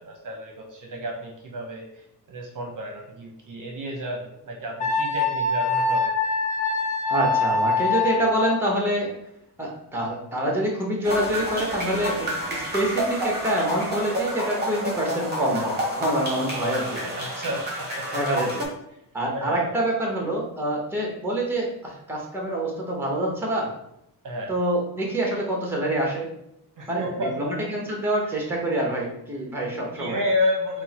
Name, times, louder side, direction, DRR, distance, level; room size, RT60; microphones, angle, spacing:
voice 1, 0.0-6.1 17.2-18.2 18.9-19.0 19.3-19.7 24.2-24.5 26.8-27.6 29.7-30.8, left 1 dB, 50° right, 1 dB, 0.8 m, -31 dB
Wind instrument woodwind instrument, 4.8-8.6, left 3 dB, 20° left, 0.5 m, -24 dB
voice 2, 7.1-9.1 9.6-17.1 18.1-18.7 19.1-23.7 24.5-26.3 26.9-27.0 27.4-30.2, right 1 dB, 5° right, -1 dB, 0.9 m, -26 dB
sound 1, 11.0-18.7, equal, 25° right, 1.2 m, -29 dB
4.4 x 2.2 x 4.1 m, 0.79 s
wide cardioid pair, 145°, 41 cm